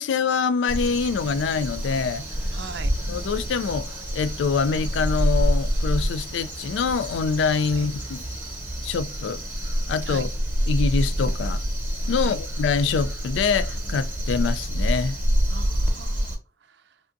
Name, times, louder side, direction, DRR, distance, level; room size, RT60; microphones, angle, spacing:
voice 1, 0.0-2.3 3.1-8.2 8.8-9.4 9.9-10.3 10.7-11.6 12.1-15.2, left 5 dB, 80° left, 0.3 m, -25 dB
Crow, 0.7-16.3, equal, 10° right, 1.1 m, -27 dB
sound 1, 1.2-8.6, left 1 dB, 30° left, 0.6 m, -49 dB
voice 2, 2.5-2.9 7.7-7.9 10.0-10.3 12.2-12.4 15.5-17.0, right 5 dB, 65° right, 0.4 m, -40 dB
3.4 x 2.5 x 2.5 m
head